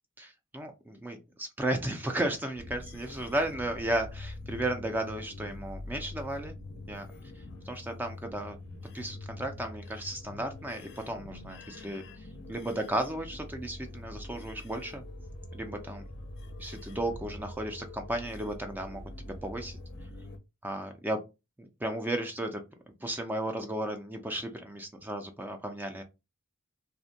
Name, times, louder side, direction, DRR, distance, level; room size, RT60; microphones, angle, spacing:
voice 1, 0.2-6.5 6.9-7.1 7.7-8.6 8.9-15.0 15.5-16.0 16.6-19.8 20.6-21.2 21.6-22.6 23.0-26.0, right 1 dB, 10° right, 6 dB, 0.3 m, -34 dB
sound 1, 2.6-20.4, left 2 dB, 50° left, 0.5 m, -44 dB
2.5 x 2.1 x 2.7 m, 0.25 s
head